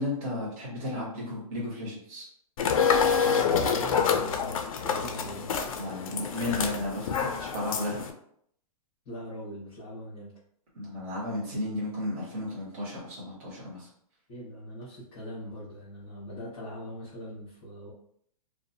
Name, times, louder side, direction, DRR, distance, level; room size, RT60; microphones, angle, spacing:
voice 1, 0.0-2.3 5.8-8.0 10.7-13.9, left 1 dB, 20° right, -7 dB, 0.7 m, -34 dB
sound 1, 2.6-8.1, left 6 dB, 65° left, 0.4 m, -27 dB
voice 2, 3.2-5.5 9.0-10.3 14.3-17.9, equal, 25° left, -10 dB, 0.9 m, -41 dB
2.6 x 2.1 x 2.6 m, 0.68 s
hypercardioid pair, 180°, 19 cm